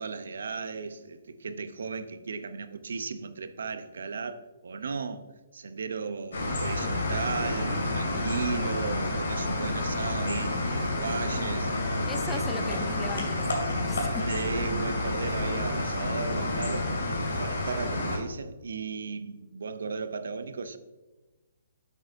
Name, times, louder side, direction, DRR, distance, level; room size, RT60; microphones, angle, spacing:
voice 1, 0.0-5.3 5.5-11.7 12.3-12.5 14.3-17.0 17.3-20.8, right 5 dB, 75° right, 11 dB, 0.6 m, -35 dB
sound 1, 6.3-18.2, left 2 dB, 80° left, 2.4 m, -29 dB
voice 2, 12.1-14.3, left 4 dB, 10° left, 8 dB, 0.6 m, -39 dB
8.1 x 6.5 x 2.6 m, 1.2 s
hypercardioid pair, 140°, 0 cm